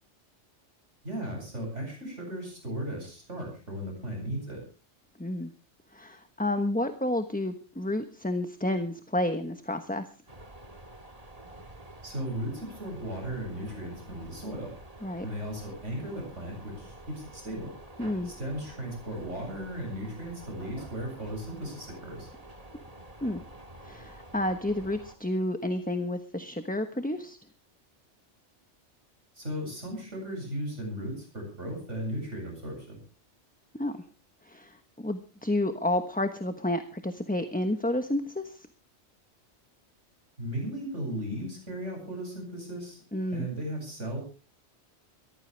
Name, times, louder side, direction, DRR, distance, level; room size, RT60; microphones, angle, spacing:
voice 1, 1.0-4.6 12.0-14.7 15.2-17.7 18.2-22.3 29.3-33.0 40.4-43.0 43.3-44.2, right 1 dB, 85° right, 0 dB, 8.2 m, -36 dB
voice 2, 5.2-5.5 5.9-10.0 15.0-15.2 18.0-18.3 23.2-23.4 23.8-27.4 33.7-34.0 34.4-38.7 43.1-43.5, left 1 dB, 10° left, 8 dB, 1.1 m, -30 dB
sound 1, 10.3-25.2, right 1 dB, 30° right, 2.1 m, -48 dB
22.5 x 15.0 x 3.4 m, 0.36 s
omnidirectional pair, 1.2 m